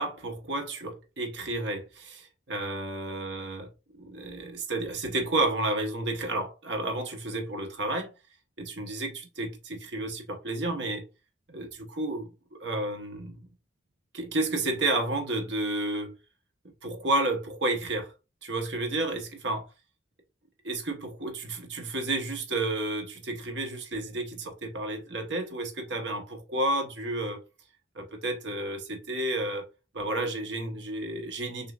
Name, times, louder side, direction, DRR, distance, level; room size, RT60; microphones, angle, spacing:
voice 1, 0.0-3.7 3.9-8.1 8.6-11.0 11.5-13.4 14.1-16.2 16.8-18.1 18.4-19.6 20.6-27.4 27.9-29.7 29.9-31.7, right 2 dB, 65° right, 1.1 m, -31 dB
6.7 x 2.7 x 2.4 m
head